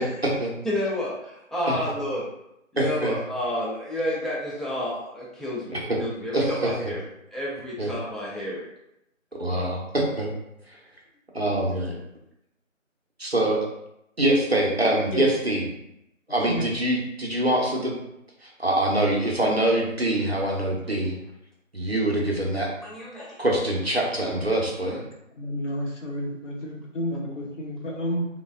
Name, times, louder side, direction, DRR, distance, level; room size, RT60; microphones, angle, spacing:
voice 1, 0.0-0.5 1.7-2.0 2.8-3.2 5.7-6.0 6.3-6.7 7.8-7.9 9.3-10.3 11.3-11.9 13.2-13.6 14.2-15.6 16.3-17.9 18.4-21.1 21.7-22.7 23.4-25.0, right 1 dB, 50° right, -2 dB, 0.5 m, -24 dB
voice 2, 0.6-2.3 2.7-7.0 7.3-8.7 9.5-9.7 22.8-23.4, left 1 dB, ahead, -6 dB, 0.4 m, -30 dB
voice 3, 25.3-28.3, equal, 65° left, -1 dB, 0.7 m, -30 dB
3.0 x 2.0 x 2.3 m, 0.83 s
figure-of-eight pair, 175°, 40 cm